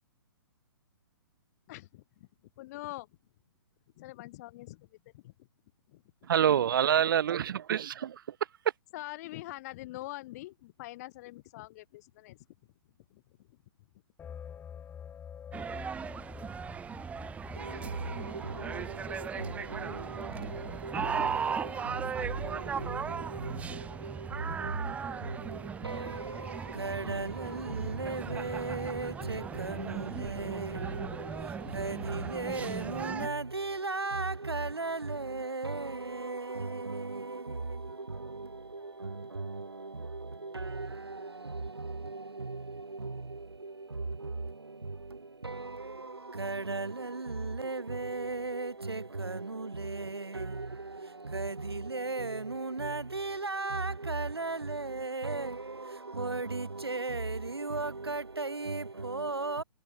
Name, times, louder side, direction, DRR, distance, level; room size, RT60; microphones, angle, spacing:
voice 1, 1.7-2.3 2.6-3.1 4.0-5.5 5.9-6.3 8.9-12.5 13.1-13.6, left 18 dB, 40° left, 7.9 m, -45 dB
voice 2, 6.2-8.4, right 9 dB, 60° right, 0.4 m, -27 dB
sound 1, 14.2-20.7, left 8 dB, 15° left, 2.1 m, -48 dB
sound 2, 15.5-33.3, right 6 dB, 10° right, 0.9 m, -38 dB
voice 3, 17.5-59.6, right 3 dB, 85° right, 3.1 m, -37 dB
figure-of-eight pair, 120°, 13 cm